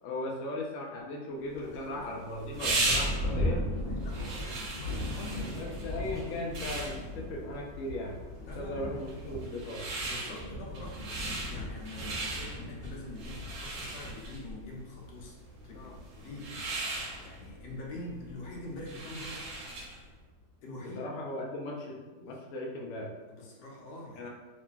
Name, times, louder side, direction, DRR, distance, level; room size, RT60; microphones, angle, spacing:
voice 1, 0.0-3.7 5.6-8.2 8.6-9.9 15.7-16.0 20.8-23.1 24.2-24.3, left 1 dB, 70° left, -1 dB, 0.7 m, -38 dB
sound 1, 1.5-20.1, right 2 dB, 70° right, 1.0 m, -38 dB
voice 2, 1.6-2.0 3.8-5.8 8.4-8.8 10.0-15.4 15.6-19.5 20.6-21.0 23.3-24.3, left 2 dB, 85° left, -2 dB, 1.2 m, -44 dB
Thunder, 2.6-18.6 19.4-19.5 20.1-20.5, left 1 dB, 45° right, 1.0 m, -39 dB
2.8 x 2.5 x 2.3 m, 1.2 s
omnidirectional pair, 1.8 m